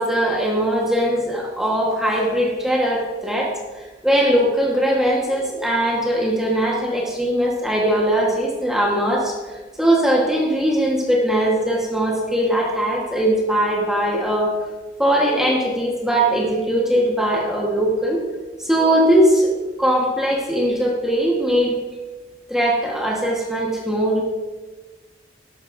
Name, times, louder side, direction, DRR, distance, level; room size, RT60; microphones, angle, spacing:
voice 1, 0.0-3.6 4.0-14.6 15.0-18.2 18.6-21.8 22.5-24.2, right 1 dB, ahead, -2 dB, 1.3 m, -20 dB
13.0 x 12.0 x 2.6 m, 1.3 s
head